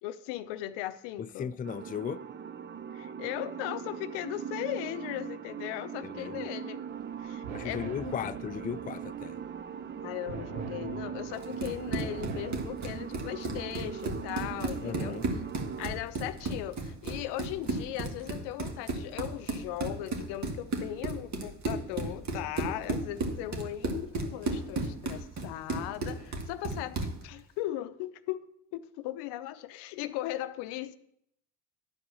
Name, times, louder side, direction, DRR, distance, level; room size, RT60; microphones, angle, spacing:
voice 1, 0.0-1.5 2.9-6.8 7.2-8.1 10.0-15.2 15.8-28.4 28.7-30.9, left 14 dB, 75° left, 0.7 m, -38 dB
voice 2, 1.2-2.2 6.0-6.5 7.5-9.4 14.8-15.3, left 8 dB, 20° left, 0.4 m, -37 dB
sound 1, 1.6-15.9, right 8 dB, 25° right, 0.5 m, -40 dB
sound 2, 6.9-12.6, right 5 dB, 90° right, 1.1 m, -45 dB
Run, 11.4-27.2, right 2 dB, 45° right, 1.8 m, -34 dB
11.0 x 4.8 x 6.9 m
hypercardioid pair, 65°, 40 cm